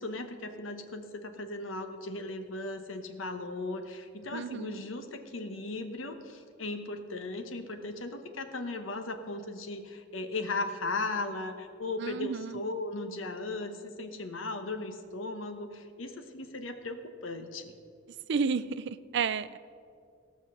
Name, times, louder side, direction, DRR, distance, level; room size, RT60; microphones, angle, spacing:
voice 1, 0.0-17.8, left 2 dB, 90° left, 7 dB, 1.1 m, -37 dB
voice 2, 4.3-4.8 12.0-12.6 18.3-19.6, right 5 dB, 60° right, 14 dB, 0.4 m, -32 dB
17.5 x 6.0 x 6.4 m, 2.3 s
head